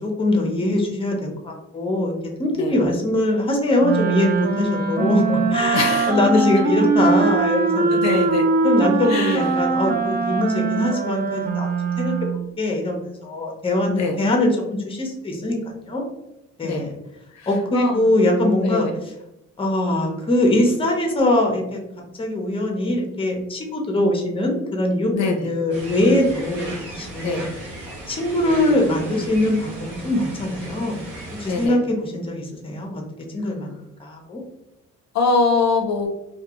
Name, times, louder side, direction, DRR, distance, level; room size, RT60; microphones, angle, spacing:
voice 1, 0.0-2.1 2.4-8.2 8.6-14.5 14.8-15.6 15.8-16.0 16.6-16.9 17.5-18.9 19.6-21.8 22.2-27.5 28.1-31.1 31.3-33.0 33.3-33.7 34.0-34.4, left 1 dB, 20° left, 1 dB, 0.7 m, -22 dB
Wind instrument woodwind instrument, 3.8-12.5, right 4 dB, 30° right, 0.4 m, -22 dB
voice 2, 5.7-6.5 7.9-8.5 9.1-9.5 13.9-14.2 16.6-16.9 17.3-18.0 18.6-18.9 25.1-25.5 27.2-27.5 31.5-31.8 35.1-36.1, left 4 dB, 60° left, 3 dB, 0.5 m, -23 dB
sound 1, 25.7-31.7, right 2 dB, 85° right, 0.9 m, -36 dB
2.3 x 2.3 x 2.8 m, 0.87 s
cardioid pair, 90°, 30 cm